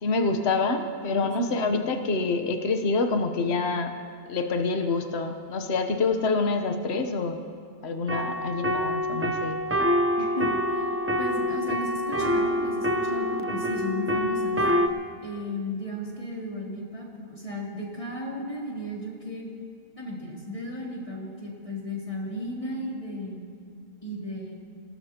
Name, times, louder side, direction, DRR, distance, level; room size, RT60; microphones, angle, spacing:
voice 1, 0.0-3.9 4.3-7.4 7.8-9.6, left 3 dB, 55° left, 5 dB, 1.2 m, -26 dB
voice 2, 1.1-1.7 10.2-10.9 11.2-14.6 15.2-19.5 20.0-23.4 24.0-24.5, left 1 dB, 25° left, -4 dB, 3.1 m, -35 dB
sound 1, 8.1-14.9, equal, 15° right, 0.4 m, -26 dB
26.5 x 18.0 x 2.9 m, 2.3 s
omnidirectional pair, 1.4 m